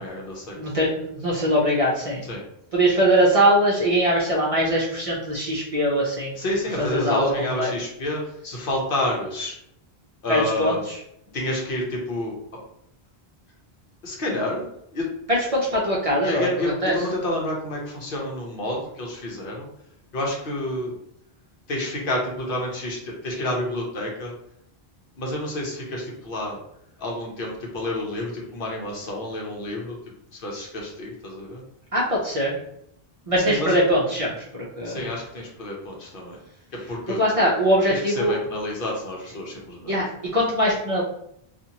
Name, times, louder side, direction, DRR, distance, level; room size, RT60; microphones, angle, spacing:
voice 1, 0.0-0.6 2.2-2.4 6.4-9.6 10.2-10.8 11.3-12.4 14.0-14.6 14.9-15.1 16.2-19.7 20.1-20.9 21.7-24.3 25.2-26.6 27.0-29.9 30.3-31.6 33.4-33.8 34.8-36.4 36.7-37.2 37.9-39.9, left 1 dB, 60° left, -1 dB, 0.9 m, -29 dB
voice 2, 0.5-2.2 2.7-6.3 6.8-7.7 10.3-11.0 15.3-16.9 31.9-32.6 33.3-34.4 34.8-35.0 37.2-38.3 39.9-41.0, equal, 40° right, -5 dB, 0.6 m, -22 dB
2.8 x 2.4 x 2.7 m, 0.74 s
omnidirectional pair, 1.1 m